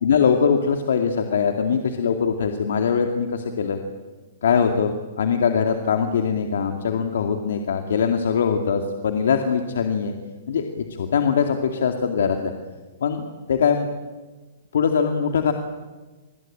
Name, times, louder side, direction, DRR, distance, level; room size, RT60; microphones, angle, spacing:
voice 1, 0.0-3.8 4.4-10.1 10.5-12.5 13.0-13.9 14.7-15.5, left 6 dB, 80° left, 5 dB, 2.4 m, -22 dB
28.5 x 21.5 x 8.8 m, 1.3 s
hypercardioid pair, 140°, 0 cm